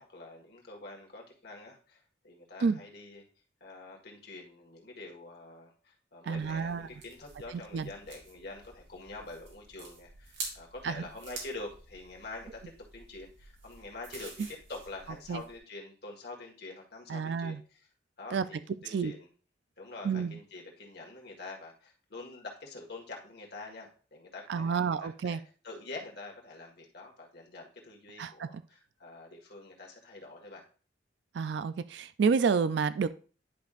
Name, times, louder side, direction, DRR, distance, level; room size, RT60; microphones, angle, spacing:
voice 1, 0.0-3.2 3.6-17.9 18.2-19.3 19.8-25.4 25.6-30.6, left 2 dB, 55° left, -1 dB, 1.8 m, -46 dB
voice 2, 6.3-6.9 7.7-7.9 10.8-11.0 15.3-15.4 17.1-17.6 18.3-18.4 18.9-19.1 20.0-20.3 24.5-25.4 28.2-28.5 31.3-33.1, right 5 dB, 60° right, 14 dB, 0.3 m, -29 dB
sound 1, 6.3-15.6, right 3 dB, 90° right, 2.7 m, -48 dB
10.5 x 5.3 x 2.5 m, 0.40 s
head